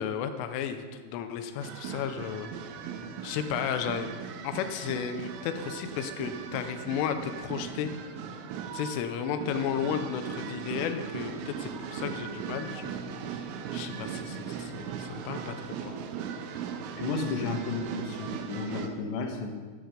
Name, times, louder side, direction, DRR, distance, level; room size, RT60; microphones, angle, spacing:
voice 1, 0.0-2.5 3.2-4.1 4.4-7.9 8.7-13.4 13.7-16.0, left 8 dB, 90° left, 8 dB, 3.4 m, -33 dB
sound 1, 1.6-18.9, right 7 dB, 90° right, 3.4 m, -38 dB
voice 2, 17.0-19.5, left 4 dB, 70° left, 3 dB, 3.6 m, -32 dB
15.0 x 11.0 x 5.2 m, 1.5 s
omnidirectional pair, 5.5 m